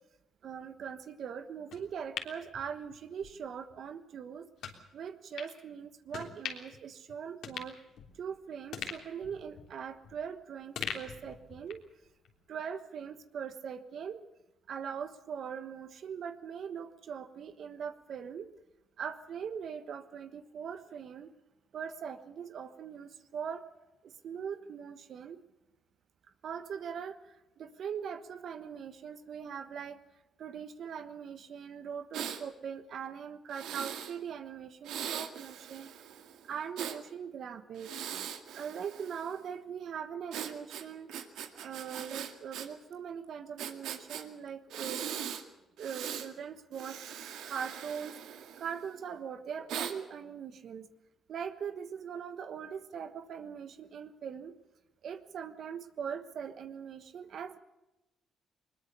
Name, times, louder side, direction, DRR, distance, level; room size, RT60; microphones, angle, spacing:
voice 1, 0.4-4.5 4.9-7.7 8.2-11.8 12.5-14.2 14.7-18.5 19.0-21.3 21.7-23.6 24.2-25.4 26.4-27.2 27.6-30.0 30.4-35.9 36.5-37.9 38.6-41.1 41.6-45.1 45.8-47.0 47.5-48.2 48.6-50.9 51.3-54.5 55.0-57.6, right 7 dB, 65° right, 10 dB, 1.3 m, -41 dB
sound 1, 1.7-3.3 3.7-3.8 4.6-4.8 5.4-5.5 6.1-6.8 7.1-7.2 7.4-8.3 8.7-10.3 10.7-11.9 12.2-12.3, left 8 dB, 75° left, 3.4 m, -42 dB
Breathing, 32.1-32.4 33.5-34.1 34.8-37.0 37.7-39.4 40.3-42.7 42.9-43.0 43.6-44.2 44.7-45.4 45.8-46.3 46.7-48.9 49.7-49.9, right 9 dB, 85° right, 2.1 m, -40 dB
21.0 x 20.5 x 6.8 m, 0.99 s
cardioid pair, 90°, 0 cm